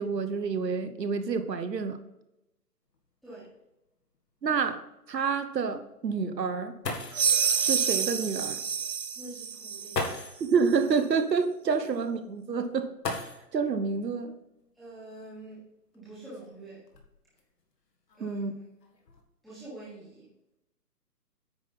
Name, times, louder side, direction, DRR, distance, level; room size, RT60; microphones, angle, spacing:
voice 1, 0.0-2.0 4.4-6.8 7.6-8.6 10.4-12.9 13.5-14.4 18.2-18.5, right 5 dB, 85° right, 10 dB, 1.1 m, -28 dB
Table Slam (Closed Fist), 2.9-3.0 3.4-3.5 4.1-4.2 6.5-6.6 6.8-7.4 8.7-8.8 9.9-10.5 13.0-13.7 15.1-15.2 15.9-17.4 18.1-18.5 18.8-19.2, left 3 dB, 80° left, 1.9 m, -36 dB
sound 1, 7.1-10.1, right 7 dB, 50° right, 0.9 m, -28 dB
voice 2, 9.1-10.1 14.8-15.6 15.9-16.8 18.2-18.4 19.4-20.2, right 2 dB, ahead, -13 dB, 1.2 m, -45 dB
9.6 x 4.2 x 5.3 m, 0.91 s
hypercardioid pair, 165°, 48 cm